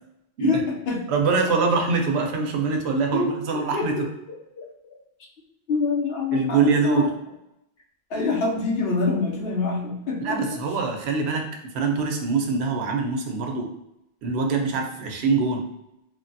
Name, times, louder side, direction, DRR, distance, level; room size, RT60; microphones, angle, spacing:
voice 1, 0.4-1.1 3.1-4.7 5.7-7.1 8.1-10.6, left 4 dB, 70° left, 0 dB, 0.8 m, -26 dB
voice 2, 1.1-3.9 6.3-7.1 10.2-11.4 11.7-13.7 14.2-15.6, right 4 dB, 85° right, 3 dB, 0.8 m, -23 dB
3.1 x 2.1 x 2.6 m, 0.86 s
omnidirectional pair, 1.1 m